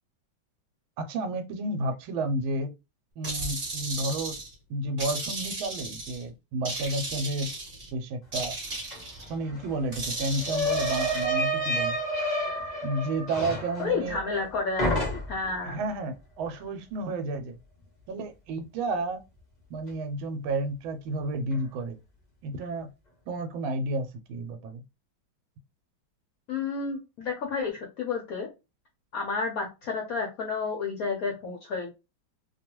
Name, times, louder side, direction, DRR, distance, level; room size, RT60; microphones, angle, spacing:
voice 1, 1.0-2.7 3.2-4.4 4.7-7.5 7.9-8.6 9.3-11.9 12.8-14.2 15.6-17.5 18.1-19.2 19.7-22.0 22.4-22.9 23.3-24.8, right 2 dB, 80° right, 1.4 m, -31 dB
sound 1, 3.2-4.5 5.0-6.2 6.7-7.9 8.3-9.3 9.9-11.3, right 2 dB, 30° right, 1.0 m, -35 dB
sound 2, 8.9-9.0 9.3-14.5 14.8-15.5, equal, 50° left, 0.5 m, -30 dB
voice 2, 13.8-15.8 26.5-28.5 29.1-31.9, left 4 dB, 65° left, 0.8 m, -31 dB
3.1 x 2.3 x 2.9 m
omnidirectional pair, 2.2 m